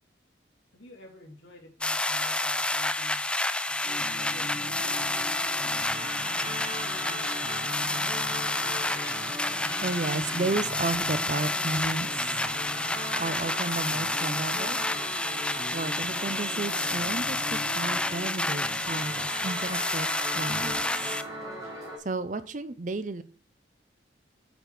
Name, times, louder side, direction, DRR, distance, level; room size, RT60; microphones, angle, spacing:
voice 1, 0.7-3.3 3.7-5.1, left 1 dB, 80° left, 0 dB, 3.0 m, -50 dB
sound 1, 1.8-21.2, left 2 dB, 5° left, 0.3 m, -30 dB
sound 2, 3.8-22.0, equal, 20° right, 3.4 m, -39 dB
voice 2, 9.8-12.4 13.2-14.8 15.7-21.1 22.0-23.2, right 3 dB, 40° right, 13 dB, 0.6 m, -33 dB
7.9 x 6.1 x 4.9 m, 0.39 s
head